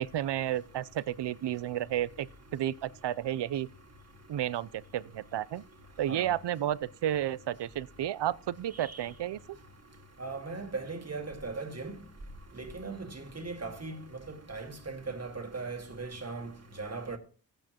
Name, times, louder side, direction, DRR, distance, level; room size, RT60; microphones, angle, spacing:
voice 1, 0.0-2.3 2.5-3.7 4.3-5.6 6.0-9.4, right 11 dB, 75° right, 0.5 m, -32 dB
voice 2, 8.8-9.1 10.2-12.0 12.6-14.0 14.3-17.2, right 3 dB, 35° right, 1.9 m, -39 dB
15.5 x 8.9 x 2.9 m
cardioid pair, 55°, 42 cm